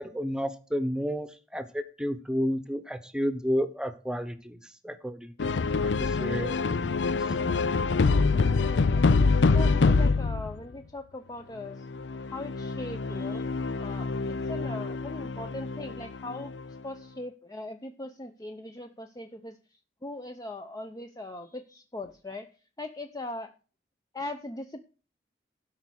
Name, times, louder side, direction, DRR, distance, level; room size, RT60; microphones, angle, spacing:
voice 1, 0.0-4.6 4.8-5.3 5.8-7.2, equal, 5° right, 11 dB, 1.0 m, -31 dB
sound 1, 5.4-10.6 11.8-16.7, left 4 dB, 85° left, 0.5 m, -26 dB
voice 2, 8.3-11.9 12.2-13.4 13.8-16.5 16.8-19.6 20.0-22.5 22.8-23.5 24.1-24.8, left 2 dB, 20° left, 6 dB, 0.6 m, -40 dB
12.5 x 5.5 x 6.3 m, 0.36 s
head